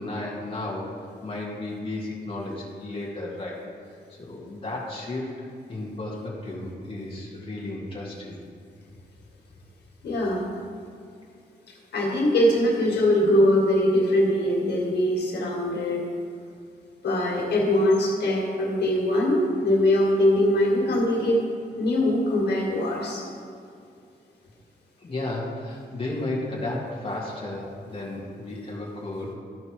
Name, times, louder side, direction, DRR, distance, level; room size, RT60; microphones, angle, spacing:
voice 1, 0.0-3.6 4.1-5.3 5.7-8.4 25.0-29.3, left 2 dB, 35° left, -5 dB, 2.0 m, -33 dB
voice 2, 10.0-10.5 11.9-16.1 17.0-21.5 21.8-23.2, left 1 dB, 85° left, -2 dB, 1.9 m, -22 dB
13.5 x 5.3 x 4.8 m, 2.5 s
wide cardioid pair, 140°, 17 cm